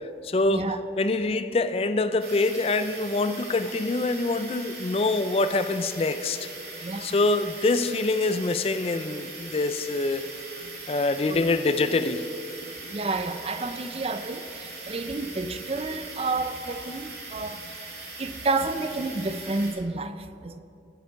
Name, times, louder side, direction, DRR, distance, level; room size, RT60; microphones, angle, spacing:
voice 1, 0.2-0.7 1.0-6.5 7.0-10.3 10.9-12.3, left 3 dB, 35° left, 11 dB, 0.4 m, -25 dB
sound 1, 2.2-19.7, right 3 dB, 60° right, 2.5 m, -41 dB
voice 2, 6.8-7.2 11.3-11.6 12.9-17.6 18.2-20.6, right 3 dB, 35° right, 10 dB, 0.5 m, -30 dB
16.0 x 8.2 x 4.6 m, 2.6 s
head